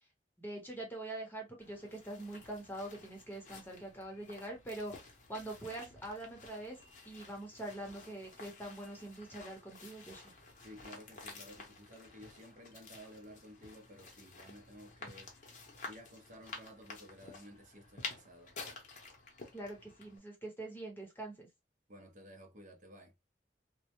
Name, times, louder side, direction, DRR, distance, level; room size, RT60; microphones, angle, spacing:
voice 1, 0.4-6.8 7.0-10.3 19.5-21.5, right 1 dB, 10° left, 0.7 m, -44 dB
sound 1, 1.6-20.2, left 3 dB, 45° left, 0.7 m, -51 dB
voice 2, 10.6-15.3 15.8-18.6 21.9-23.1, equal, 45° right, 0.6 m, -54 dB
2.1 x 2.0 x 2.8 m
head